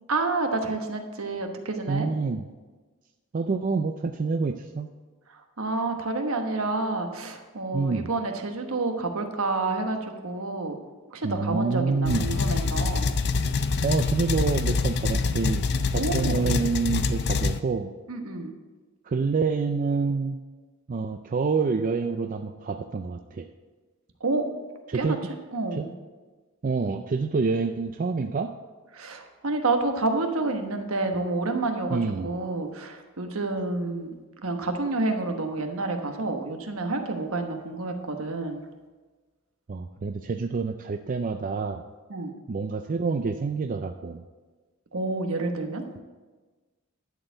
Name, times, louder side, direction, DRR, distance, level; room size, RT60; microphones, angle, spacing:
voice 1, 0.1-2.1 5.3-10.8 11.1-13.1 15.9-16.6 18.1-18.5 24.2-24.4 24.9-25.2 25.5-25.9 28.9-38.6 42.1-42.3 44.9-45.8, right 3 dB, 70° right, 5 dB, 1.1 m, -29 dB
voice 2, 1.9-2.4 3.3-4.9 7.7-8.1 11.2-12.3 13.8-15.7 15.9-17.9 19.0-20.4 20.9-23.5 24.9-25.2 25.8-25.9 26.6-28.5 31.9-32.3 39.7-41.8 42.5-44.2, right 4 dB, 40° right, 6 dB, 0.4 m, -27 dB
sound 1, 12.1-17.6, left 4 dB, 50° left, 0.5 m, -25 dB
11.0 x 4.4 x 7.9 m, 1.3 s
head